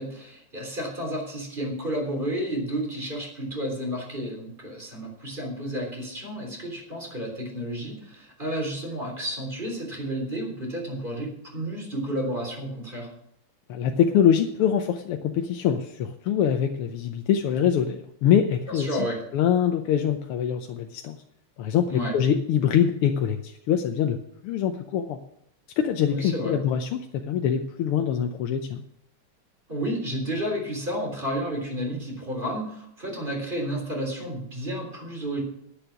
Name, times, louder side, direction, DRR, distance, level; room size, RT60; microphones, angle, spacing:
voice 1, 0.0-13.1 18.7-19.2 21.9-22.1 26.1-26.6 29.7-35.4, equal, 20° right, 1 dB, 3.6 m, -31 dB
voice 2, 13.7-18.9 19.3-21.2 21.6-24.2 24.4-25.2 25.8-28.8, left 9 dB, 90° left, 5 dB, 1.7 m, -24 dB
10.0 x 9.7 x 5.9 m, 0.73 s
omnidirectional pair, 2.4 m